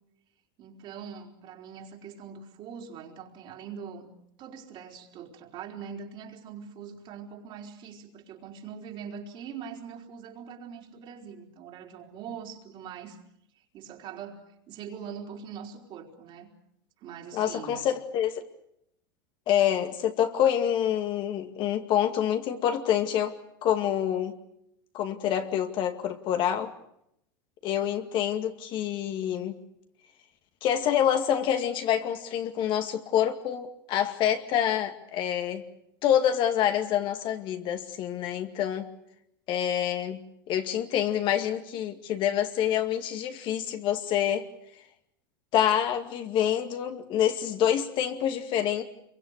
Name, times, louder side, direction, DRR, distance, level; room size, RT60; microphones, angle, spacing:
voice 1, 0.6-4.1 4.4-13.2 13.7-16.5 17.0-17.8, right 7 dB, 45° right, 1 dB, 4.5 m, -42 dB
voice 2, 17.3-18.4 19.5-23.4 23.6-24.3 24.9-26.7 27.6-29.6 30.6-35.6 36.0-38.9 39.5-44.5 45.5-48.8, left 10 dB, 45° left, 6 dB, 2.2 m, -27 dB
26.5 x 23.5 x 6.7 m, 0.77 s
supercardioid pair, 115°, 11 cm